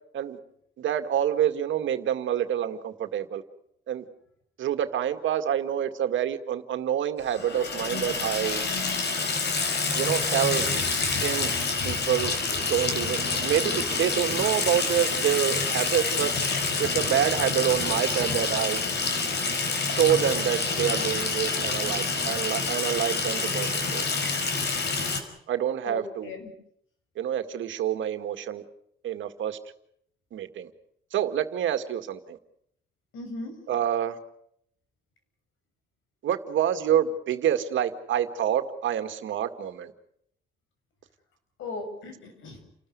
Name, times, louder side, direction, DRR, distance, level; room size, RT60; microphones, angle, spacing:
voice 1, 0.8-3.4 3.9-4.1 4.6-8.6 9.9-10.7 11.2-16.3 16.8-18.8 20.0-24.0 25.5-26.3 27.2-28.6 29.0-29.6 30.3-30.7 31.1-32.4 33.7-34.2 36.2-39.9, right 10 dB, 75° right, 8 dB, 2.1 m, -27 dB
Water tap faucet / Sink (filling or washing), 7.3-25.2, left 4 dB, 60° left, 4.9 m, -27 dB
voice 2, 25.9-26.5 33.1-33.6 41.6-42.6, left 2 dB, 80° left, 6 dB, 7.0 m, -37 dB
30.0 x 13.5 x 9.5 m, 0.72 s
cardioid pair, 90°, 20 cm